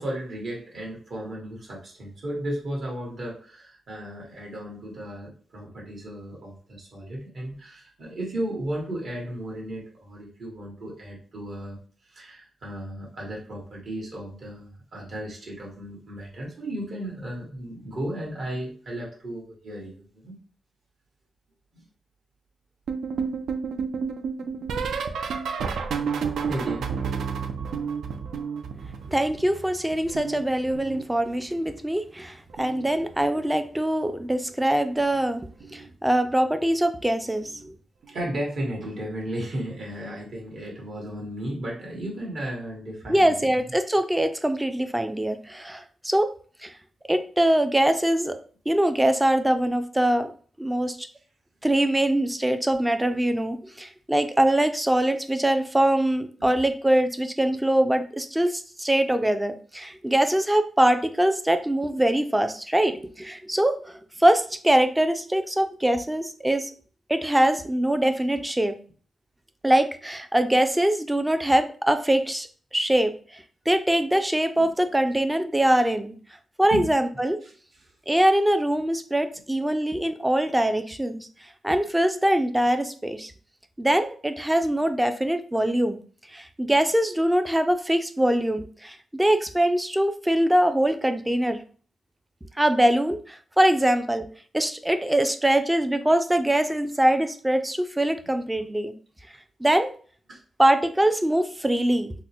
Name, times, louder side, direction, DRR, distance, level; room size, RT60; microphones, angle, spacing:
voice 1, 0.0-11.8 12.0-20.4 21.7-21.8 24.4-24.9 26.4-26.9 38.1-43.5 74.5-74.7 76.7-76.9 77.4-77.9 100.3-100.4, right 1 dB, 60° right, -3 dB, 1.3 m, -35 dB
sound 1, 22.9-29.6 29.9-31.5 32.5-32.9 33.1-33.5 35.0-35.3 35.6-35.9 37.4-37.5, right 6 dB, 90° right, 0.4 m, -31 dB
voice 2, 29.1-37.8 43.1-46.3 46.6-46.7 47.1-48.4 48.7-50.3 50.6-51.1 51.6-66.7 67.1-68.8 69.6-72.5 72.7-76.1 76.6-77.4 78.1-81.3 81.6-83.3 83.8-86.0 86.3-91.6 92.6-94.3 94.5-98.9 99.6-99.9 100.6-102.1, right 1 dB, 10° right, 8 dB, 0.3 m, -23 dB
4.0 x 2.0 x 2.9 m, 0.42 s
wide cardioid pair, 130°, 0 cm